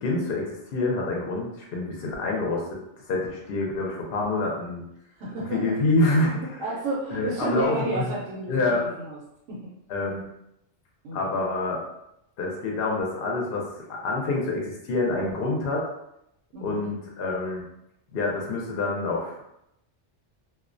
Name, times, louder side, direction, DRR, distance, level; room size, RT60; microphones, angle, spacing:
voice 1, 0.0-2.7 3.1-4.8 5.5-6.6 7.1-8.1 8.5-8.8 9.9-10.2 11.1-11.8 12.4-13.6 14.0-15.9 16.6-17.6 18.1-19.4, left 2 dB, 60° left, -1 dB, 0.7 m, -26 dB
voice 2, 5.1-5.7 6.6-9.2 9.5-9.7 11.0-11.3 16.5-16.9, right 2 dB, 85° right, -5 dB, 1.0 m, -32 dB
2.4 x 2.1 x 2.5 m, 0.82 s
omnidirectional pair, 1.2 m